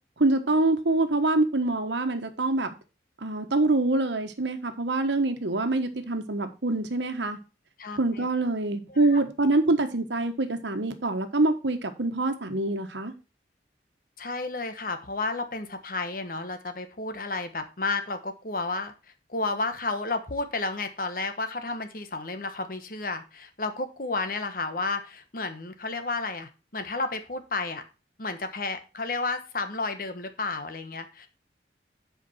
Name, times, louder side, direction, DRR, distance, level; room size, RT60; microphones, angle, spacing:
voice 1, 0.2-2.7 3.2-7.4 8.0-13.1, right 2 dB, 80° right, 1.2 m, -25 dB
voice 2, 7.8-8.3 8.9-9.2 14.2-18.9 19.3-27.8 28.2-31.3, left 3 dB, 50° left, 1.1 m, -32 dB
8.1 x 5.1 x 5.6 m
head